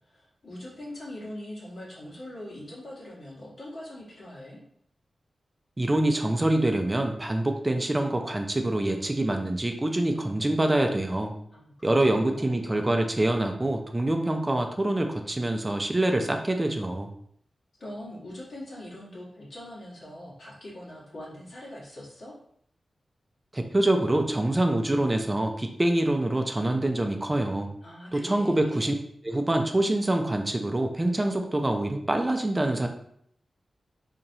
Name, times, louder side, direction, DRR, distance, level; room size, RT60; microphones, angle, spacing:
voice 1, 0.1-4.6 11.5-12.6 17.8-22.3 27.8-28.9, left 1 dB, 65° left, -6 dB, 1.5 m, -42 dB
voice 2, 5.8-11.4 11.8-17.1 23.5-27.7 28.1-28.9 29.2-32.9, right 1 dB, 20° right, 4 dB, 0.4 m, -25 dB
4.0 x 2.9 x 2.8 m, 0.67 s
cardioid pair, 75°, 0 cm